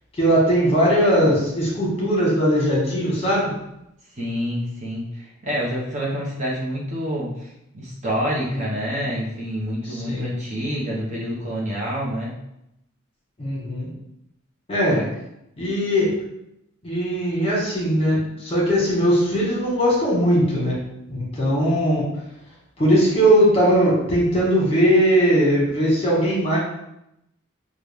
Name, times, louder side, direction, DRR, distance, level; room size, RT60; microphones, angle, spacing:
voice 1, 0.1-3.5 8.5-8.6 9.8-10.3 13.4-13.9 14.7-15.0 15.6-16.1 16.8-20.8 21.1-22.0 22.8-26.6, equal, 30° left, -5 dB, 1.5 m, -19 dB
voice 2, 4.1-12.4 14.9-15.0, equal, 35° right, -4 dB, 0.9 m, -27 dB
6.0 x 2.4 x 3.5 m, 0.83 s
head